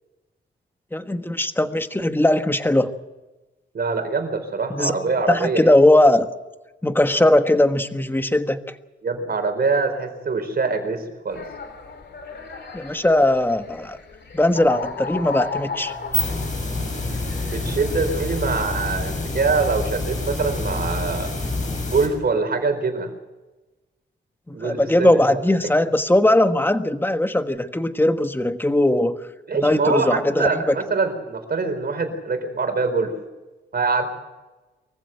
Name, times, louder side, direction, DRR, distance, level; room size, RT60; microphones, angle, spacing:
voice 1, 0.9-2.9 4.7-5.0 5.3-6.3 6.8-8.6 12.7-14.0 14.3-15.9 24.5-29.1 29.5-30.8, left 1 dB, 10° left, 8 dB, 1.3 m, -19 dB
voice 2, 3.7-5.7 9.0-11.4 17.4-21.5 21.9-23.1 24.5-25.4 29.5-33.1 33.7-34.1, right 4 dB, 55° right, 6 dB, 4.4 m, -24 dB
sound 1, 11.3-18.1, left 5 dB, 65° left, 3.4 m, -35 dB
sound 2, 15.9-22.1, left 2 dB, 40° left, 6.7 m, -27 dB
24.0 x 15.0 x 7.9 m, 1.1 s
wide cardioid pair, 100°, 19 cm